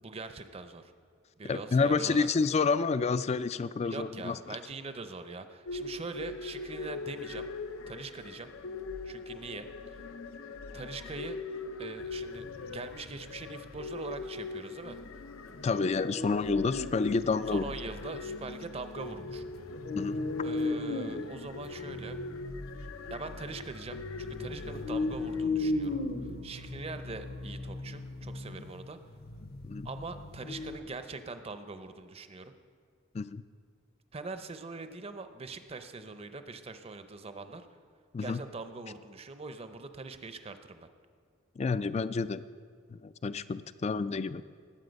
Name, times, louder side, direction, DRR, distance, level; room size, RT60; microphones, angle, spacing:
voice 1, 0.0-0.9 1.4-2.3 3.8-7.5 7.9-8.5 9.0-10.0 10.7-11.4 11.8-15.0 17.5-19.4 20.4-22.2 23.1-29.0 29.8-32.5 34.1-37.7 38.2-40.9, right 3 dB, 30° right, 9 dB, 0.6 m, -42 dB
voice 2, 1.5-4.4 15.6-17.7 19.9-20.2 29.6-29.9 33.1-33.4 38.1-38.4 41.6-42.4 42.9-44.4, left 4 dB, 30° left, 15 dB, 0.3 m, -29 dB
sound 1, 5.7-25.4, left 3 dB, 85° left, 0.6 m, -42 dB
sound 2, 12.0-13.8 15.6-17.0 17.3-17.4 17.9-18.4 19.0-30.8, left 2 dB, 50° left, 0.8 m, -37 dB
19.0 x 8.3 x 5.2 m, 2.1 s
head